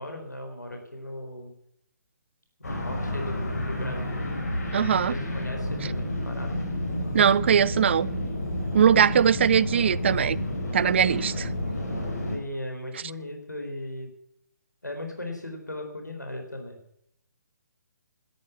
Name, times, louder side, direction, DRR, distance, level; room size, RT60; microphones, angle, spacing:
voice 1, 0.0-1.5 2.6-4.3 5.0-6.5 12.3-14.1 14.8-16.8, left 1 dB, 80° left, 4 dB, 4.1 m, -37 dB
sound 1, 2.6-12.4, left 1 dB, 60° left, 5.5 m, -30 dB
voice 2, 4.7-5.1 7.1-8.1 8.7-10.4 10.7-11.5, right 8 dB, 40° right, 22 dB, 0.5 m, -21 dB
13.0 x 11.0 x 8.4 m, 0.75 s
figure-of-eight pair, 140°, 9 cm